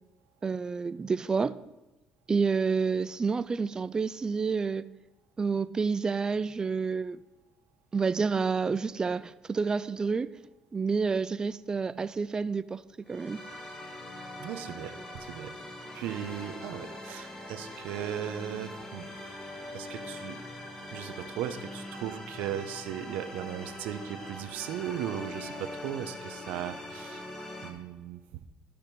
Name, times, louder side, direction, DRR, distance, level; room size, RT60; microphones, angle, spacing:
voice 1, 0.4-1.6 2.3-4.8 5.4-7.2 7.9-10.3 10.7-12.8 13.1-13.4, right 5 dB, 25° right, 0.4 m, -29 dB
sound 1, 13.0-27.7, left 1 dB, 20° left, 2.0 m, -42 dB
voice 2, 14.4-15.5 15.9-19.1 19.7-20.4 20.9-27.2 27.6-28.2, right 10 dB, 85° right, 0.8 m, -37 dB
12.5 x 5.1 x 6.0 m
cardioid pair, 105°, 3 cm